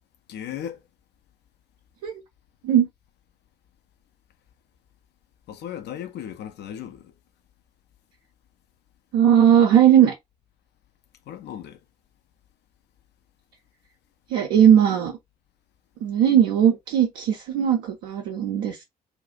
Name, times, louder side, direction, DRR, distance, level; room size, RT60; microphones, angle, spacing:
voice 1, 0.3-0.8 5.5-7.1 11.3-11.8, left 10 dB, 55° left, 0.5 m, -36 dB
voice 2, 9.1-10.1 14.3-15.1 16.0-18.8, right 9 dB, 70° right, 0.5 m, -18 dB
2.3 x 2.1 x 3.7 m
figure-of-eight pair, 40°, 21 cm